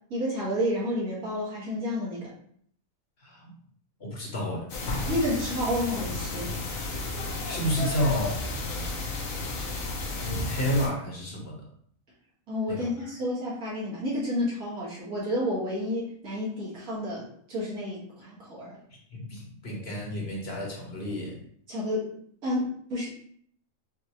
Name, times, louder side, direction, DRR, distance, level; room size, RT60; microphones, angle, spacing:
voice 1, 0.1-2.3 5.1-6.5 12.5-18.8 21.7-22.1 22.4-23.1, left 1 dB, 80° right, -7 dB, 2.0 m, -30 dB
voice 2, 4.0-4.7 7.5-8.4 10.2-11.7 12.7-12.9 19.1-21.4, equal, 50° left, -1 dB, 1.1 m, -30 dB
sound 1, 4.7-10.9, left 2 dB, 75° left, 1.2 m, -32 dB
6.0 x 2.4 x 2.9 m, 0.63 s
omnidirectional pair, 1.5 m